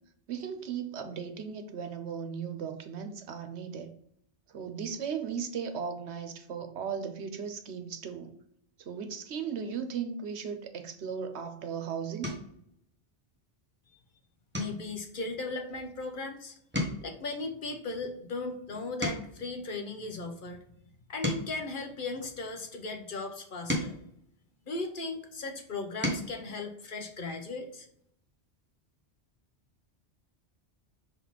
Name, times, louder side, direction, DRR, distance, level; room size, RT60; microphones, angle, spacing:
voice 1, 0.3-3.9 4.5-8.3 8.8-12.3, right 7 dB, 90° right, 1.1 m, -37 dB
sound 1, 11.3-11.6 12.2-12.6 13.1-13.5 13.8-14.0 14.5-16.3 16.6-19.5 20.1-22.6 23.3-25.1 25.7-26.4 27.8-27.9 28.2-28.4, left 1 dB, 10° right, 1.3 m, -38 dB
voice 2, 14.5-16.5 17.0-20.6 21.1-23.9 24.7-27.9, left 3 dB, 55° left, 1.0 m, -37 dB
6.0 x 3.8 x 4.1 m
omnidirectional pair, 1.1 m